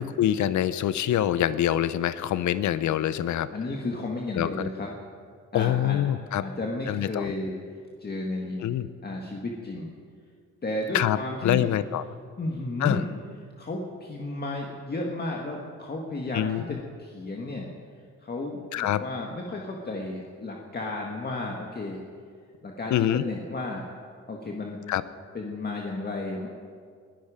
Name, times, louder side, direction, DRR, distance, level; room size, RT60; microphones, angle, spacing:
voice 1, 0.0-3.5 4.3-4.5 5.5-6.5 6.9-7.3 8.6-8.9 10.9-11.2 11.4-12.0 12.8-13.0 16.3-16.8 18.7-19.0 22.9-23.2 24.9-25.0, left 11 dB, 70° left, 15 dB, 0.8 m, -25 dB
voice 2, 3.5-4.9 5.5-6.0 6.4-7.6 8.0-8.7 9.0-9.9 10.6-11.7 12.4-13.1 13.6-17.7 18.2-22.0 22.6-23.8 24.3-24.8 25.3-26.5, left 2 dB, 30° left, 0 dB, 1.9 m, -33 dB
21.0 x 12.5 x 5.1 m, 2.1 s
cardioid pair, 90°, 30 cm